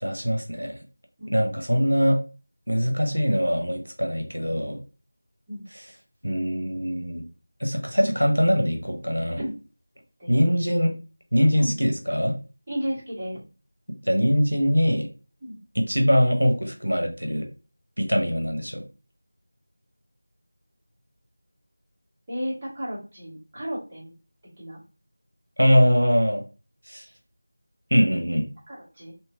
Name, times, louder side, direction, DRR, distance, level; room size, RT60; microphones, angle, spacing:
voice 1, 0.0-0.8 1.3-2.2 2.7-4.8 5.7-5.9 6.2-7.2 7.6-9.4 10.3-10.9 11.3-12.4 14.0-15.1 15.7-17.5 18.0-18.8 25.6-26.4 26.9-27.0 27.9-28.4, equal, 80° right, 4 dB, 0.6 m, -22 dB
voice 2, 1.2-1.5 5.5-5.6 9.4-9.5 10.2-10.5 11.6-11.7 12.7-13.4 15.4-15.6 22.3-24.1 24.6-24.8 28.7-29.1, equal, 20° right, -8 dB, 1.1 m, -33 dB
3.1 x 2.8 x 2.3 m, 0.33 s
figure-of-eight pair, 170°, 0 cm